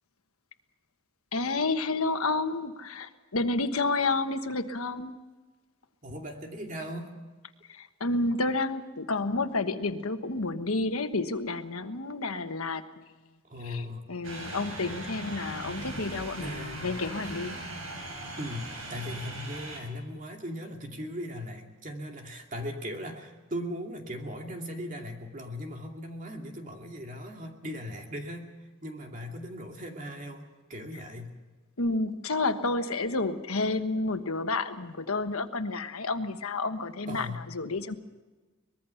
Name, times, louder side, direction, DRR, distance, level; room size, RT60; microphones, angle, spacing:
voice 1, 1.3-5.1 7.7-12.8 13.7-13.8 14.1-17.6 31.8-37.9, left 3 dB, 90° left, 8 dB, 1.4 m, -30 dB
voice 2, 6.0-7.2 13.5-14.1 16.1-16.9 17.2-17.4 18.4-28.5 28.8-31.4 37.1-37.5, equal, 35° right, 2 dB, 2.4 m, -38 dB
sound 1, 14.2-19.8, right 1 dB, 80° right, 5.5 m, -39 dB
23.5 x 21.0 x 5.8 m, 1.3 s
head